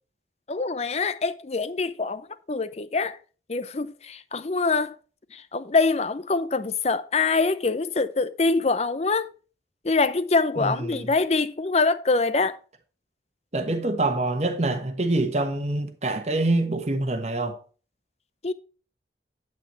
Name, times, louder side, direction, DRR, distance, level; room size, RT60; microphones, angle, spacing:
voice 1, 0.5-2.2 2.5-3.2 3.5-4.9 5.3-9.3 9.8-12.6 18.4-18.5, left 3 dB, 35° left, 0.6 m, -24 dB
voice 2, 10.6-11.1 13.5-17.6, right 2 dB, 40° right, 1.2 m, -25 dB
8.9 x 8.9 x 3.1 m
head